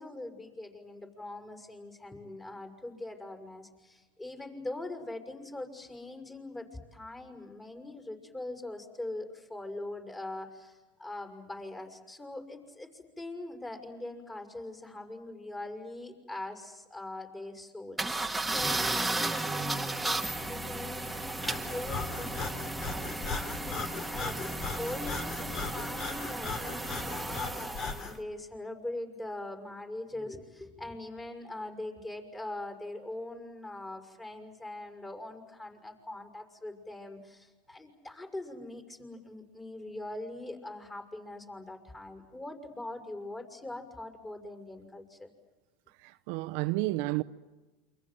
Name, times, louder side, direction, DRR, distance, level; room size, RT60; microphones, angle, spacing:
voice 1, 0.0-45.3, left 2 dB, 15° left, 6.2 m, -42 dB
sound 1, 18.0-28.1, right 2 dB, 5° right, 1.8 m, -34 dB
Breathing, 21.4-28.2, left 4 dB, 45° left, 3.6 m, -38 dB
voice 2, 46.0-47.2, right 19 dB, 65° right, 0.9 m, -31 dB
28.5 x 25.0 x 7.8 m
supercardioid pair, 115°, 0 cm